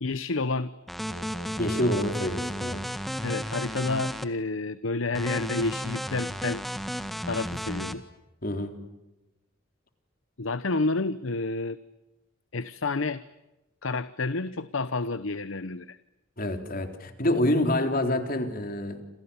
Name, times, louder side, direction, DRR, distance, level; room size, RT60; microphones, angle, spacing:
voice 1, 0.0-0.7 3.2-6.6 7.3-8.0 10.4-11.8 12.5-13.2 13.8-16.0, left 3 dB, 70° left, 15 dB, 0.9 m, -29 dB
sound 1, 0.9-4.2 5.1-7.9, equal, ahead, 1.7 m, -33 dB
voice 2, 1.6-2.8 8.4-8.9 16.4-19.0, left 1 dB, 45° left, 7 dB, 3.7 m, -27 dB
29.0 x 28.0 x 7.2 m, 1.0 s
head